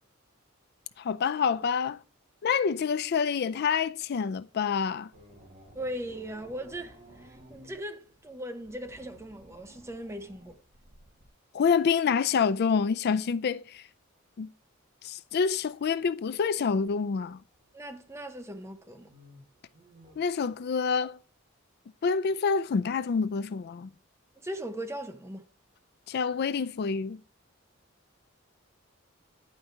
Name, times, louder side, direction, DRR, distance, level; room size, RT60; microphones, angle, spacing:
voice 1, 1.0-2.0 2.4-5.1 11.5-13.8 14.4-14.5 15.0-17.4 20.2-21.2 22.0-23.9 26.1-27.2, left 6 dB, 55° left, 0.4 m, -27 dB
sound 1, 5.1-11.3 16.9-20.2, right 1 dB, 35° right, 1.9 m, -56 dB
voice 2, 5.7-7.0 7.2-10.6 17.7-19.1 24.4-25.5, right 1 dB, 15° right, 0.7 m, -39 dB
8.9 x 5.2 x 4.0 m
head